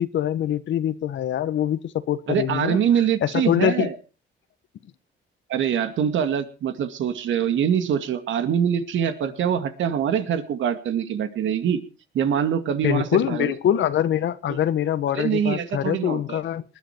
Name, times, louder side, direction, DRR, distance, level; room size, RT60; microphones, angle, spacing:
voice 1, 0.0-2.8 3.2-3.9 12.8-16.6, left 10 dB, 70° left, 14 dB, 1.3 m, -24 dB
voice 2, 2.3-3.9 5.5-11.8 12.1-13.5 14.5-14.6 15.1-16.4, right 8 dB, 75° right, 9 dB, 2.3 m, -24 dB
20.0 x 11.5 x 4.6 m, 0.34 s
cardioid pair, 90°, 20 cm